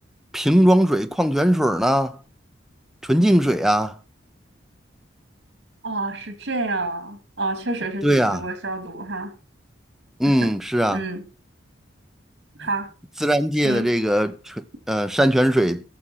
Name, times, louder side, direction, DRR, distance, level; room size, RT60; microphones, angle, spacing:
voice 1, 0.3-2.2 3.1-3.9 8.0-8.4 10.2-11.0 13.2-15.8, equal, ahead, 0.6 m, -19 dB
voice 2, 5.8-9.3 10.3-10.5 10.9-11.2 12.6-12.9 13.6-13.9, right 2 dB, 65° right, 2.5 m, -28 dB
14.5 x 6.3 x 5.7 m
head